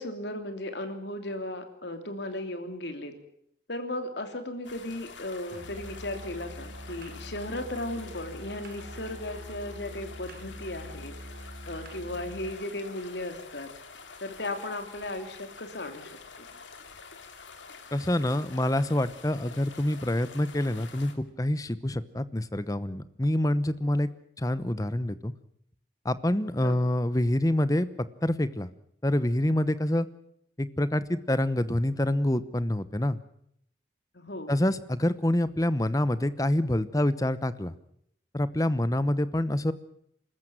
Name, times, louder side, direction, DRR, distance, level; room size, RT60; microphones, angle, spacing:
voice 1, 0.0-3.1 3.7-11.1 11.7-13.7 14.2-16.5 26.6-26.9 34.1-34.5, left 1 dB, 70° left, 6 dB, 3.1 m, -36 dB
sound 1, 4.6-21.1, left 5 dB, 90° left, 2.7 m, -48 dB
Musical instrument, 5.5-12.6, equal, 55° right, 1.6 m, -44 dB
voice 2, 17.9-24.1 24.4-25.3 26.0-27.9 28.2-28.7 29.0-30.1 30.6-33.2 34.5-37.7 38.3-39.7, left 1 dB, 20° left, 15 dB, 0.9 m, -26 dB
26.0 x 14.0 x 9.0 m, 0.70 s
head